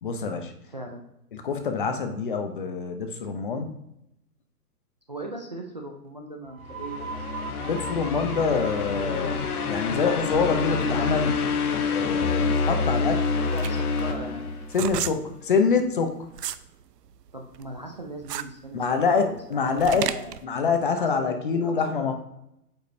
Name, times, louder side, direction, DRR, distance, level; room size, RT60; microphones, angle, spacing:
voice 1, 0.0-0.5 1.3-3.8 7.6-9.3 9.7-11.4 11.9-13.3 14.7-16.1 18.7-20.1 20.4-22.1, left 5 dB, 35° left, 6 dB, 0.7 m, -25 dB
voice 2, 0.7-1.1 5.1-7.7 13.4-14.5 17.3-18.8 19.2-20.4 20.8-21.8, right 1 dB, 30° right, 1 dB, 0.4 m, -39 dB
sound 1, 6.4-13.9, right 5 dB, 60° right, 1.0 m, -42 dB
sound 2, 6.7-15.0, left 4 dB, 65° left, 1.2 m, -27 dB
sound 3, 13.0-16.7 17.1-20.4, right 10 dB, 85° right, 0.6 m, -33 dB
8.8 x 5.3 x 2.7 m, 0.82 s
hypercardioid pair, 160°, 47 cm